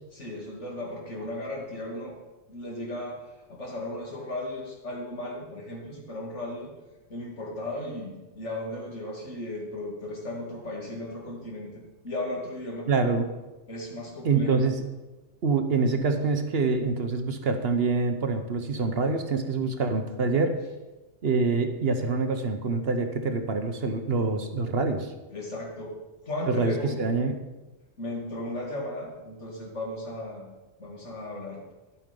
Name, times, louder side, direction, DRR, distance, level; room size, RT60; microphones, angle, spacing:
voice 1, 0.1-2.2 2.5-3.2 3.5-6.7 7.1-12.9 13.7-14.6 25.3-25.9 26.2-27.0 28.0-30.5 30.8-31.6, left 1 dB, 70° left, -2 dB, 2.8 m, -36 dB
voice 2, 12.9-13.3 14.2-14.8 15.4-20.5 21.2-25.1 26.5-27.4, right 4 dB, 55° right, 6 dB, 1.1 m, -25 dB
11.0 x 8.3 x 5.3 m, 1.1 s
omnidirectional pair, 1.3 m